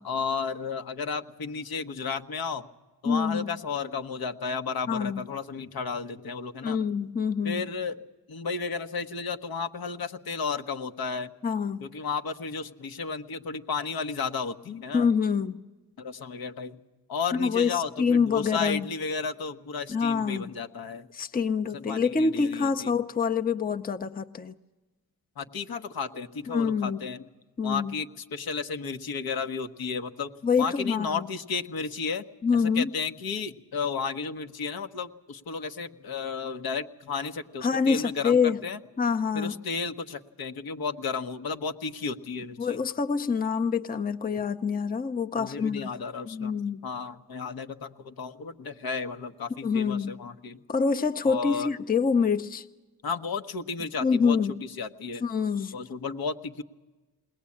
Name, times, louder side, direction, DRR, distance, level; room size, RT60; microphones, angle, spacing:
voice 1, 0.0-2.7 3.0-6.8 7.4-8.0 8.3-11.3 11.8-15.1 16.0-16.8 17.1-21.1 21.7-22.9 25.4-27.3 27.6-30.3 30.6-32.3 32.5-38.8 39.3-42.8 45.4-46.5 46.8-50.6 51.2-51.7 53.0-54.4 54.8-55.2 55.7-56.6, left 5 dB, 70° left, 6 dB, 1.2 m, -33 dB
voice 2, 3.0-3.5 4.9-5.3 6.6-7.6 11.4-11.8 14.9-15.6 17.3-18.9 19.9-20.5 21.1-24.5 26.5-27.0 27.6-27.9 30.4-31.3 32.4-32.9 37.6-38.6 39.0-39.5 42.6-45.9 46.3-46.8 49.6-50.1 50.7-52.7 54.0-54.5 55.2-55.8, left 5 dB, 25° left, 9 dB, 0.7 m, -26 dB
21.0 x 18.5 x 8.6 m, 1.2 s
cardioid pair, 80°, 38 cm